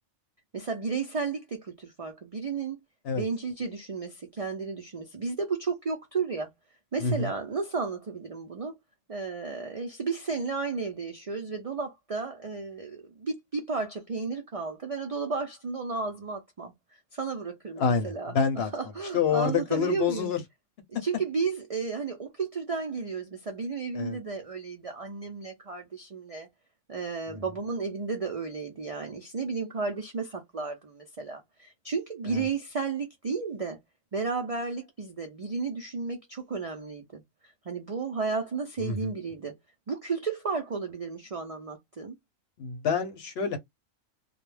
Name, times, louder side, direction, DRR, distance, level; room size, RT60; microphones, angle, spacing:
voice 1, 0.5-2.8 3.1-6.5 6.9-8.7 9.1-16.7 17.1-20.3 21.0-26.5 26.9-33.8 34.1-37.2 37.6-39.6 39.9-42.2, right 4 dB, 70° right, 0.3 m, -33 dB
voice 2, 7.0-7.3 17.8-18.7 19.1-20.4 23.9-24.2 27.3-27.4 32.3-32.5 38.8-39.1 42.6-43.6, left 6 dB, 60° left, 0.8 m, -27 dB
2.3 x 2.1 x 3.1 m
omnidirectional pair, 1.4 m